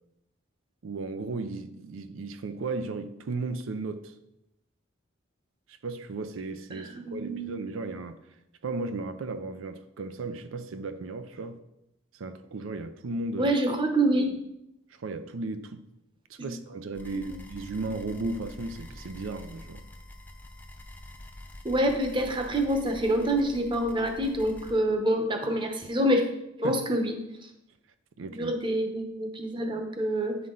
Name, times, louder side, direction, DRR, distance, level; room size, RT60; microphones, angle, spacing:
voice 1, 0.8-4.2 5.7-8.2 8.6-11.6 12.1-13.6 14.9-15.9 16.3-19.8 26.6-26.8 28.2-28.5, right 3 dB, 85° right, 0.5 m, -35 dB
voice 2, 6.7-7.6 13.4-14.4 17.3-17.4 21.6-26.3 26.6-27.1 28.4-30.4, right 1 dB, 25° right, 0.9 m, -26 dB
sound 1, 16.9-24.8, left 1 dB, 10° left, 0.6 m, -46 dB
9.4 x 5.8 x 3.8 m
head